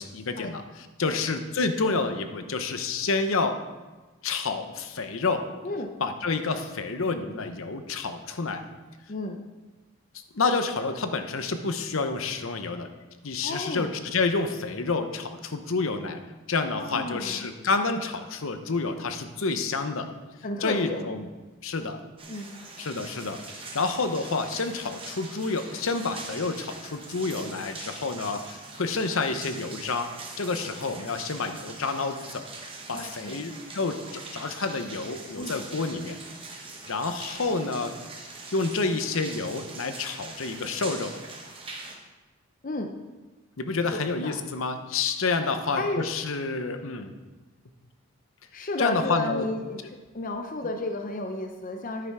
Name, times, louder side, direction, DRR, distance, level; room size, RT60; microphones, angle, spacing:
voice 1, 0.0-3.6 4.2-5.4 6.0-8.6 10.3-12.9 13.2-16.2 16.5-20.1 20.6-21.3 21.6-22.0 22.8-30.1 30.4-32.5 32.9-36.2 36.6-37.9 38.5-41.1 43.6-47.1 48.8-49.5, left 3 dB, 65° left, 8 dB, 0.8 m, -29 dB
voice 2, 9.1-9.4 13.4-13.9 16.7-17.5 20.4-21.1 22.3-22.5 32.9-33.5 35.4-35.6 42.6-42.9 43.9-44.3 45.8-46.1 48.5-49.8 50.1-52.1, left 2 dB, 35° left, 4 dB, 0.6 m, -32 dB
sound 1, 22.2-42.0, right 3 dB, 25° right, 1.0 m, -42 dB
10.0 x 6.8 x 4.9 m, 1.2 s
head